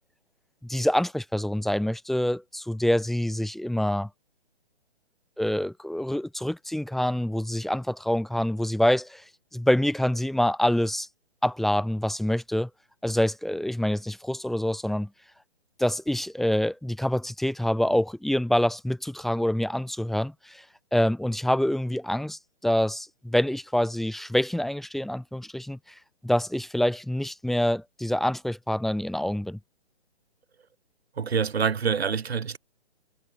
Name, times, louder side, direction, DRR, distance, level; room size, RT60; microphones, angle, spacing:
voice 1, 0.6-4.1 5.4-9.2 9.5-11.1 11.4-12.7 13.0-15.1 15.8-20.6 20.9-25.8 26.2-29.6, left 1 dB, ahead, 2.5 m, -26 dB
voice 2, 31.2-32.6, right 6 dB, 70° right, 7.0 m, -26 dB
hypercardioid pair, 170°, 33 cm